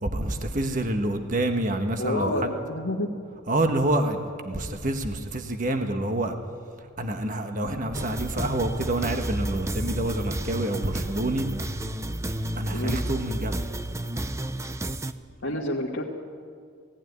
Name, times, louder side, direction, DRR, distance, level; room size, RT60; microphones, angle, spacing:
voice 1, 0.0-2.5 3.5-6.3 7.0-11.5 12.6-13.7, right 1 dB, 40° right, 6 dB, 1.3 m, -27 dB
voice 2, 2.0-3.1 12.7-13.0 15.4-16.0, left 1 dB, 70° left, -3 dB, 1.8 m, -28 dB
sound 1, 7.9-15.1, right 1 dB, 15° right, 0.6 m, -31 dB
18.0 x 15.0 x 9.5 m, 2.1 s
head